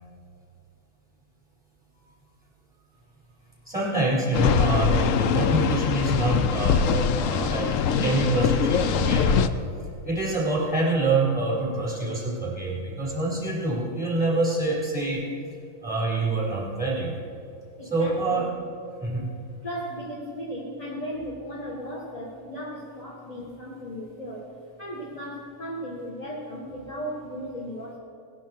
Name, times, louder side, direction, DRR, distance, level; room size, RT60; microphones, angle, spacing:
voice 1, 3.7-9.5 10.0-15.2 15.8-17.1 17.9-18.5 19.0-19.3, right 2 dB, 5° right, -4 dB, 4.3 m, -26 dB
sound 1, 4.3-9.5, left 7 dB, 75° left, 0.7 m, -23 dB
voice 2, 17.8-18.5 19.6-24.5 24.8-28.0, equal, 20° left, -4 dB, 1.7 m, -36 dB
19.0 x 11.0 x 4.6 m, 2.5 s
omnidirectional pair, 2.0 m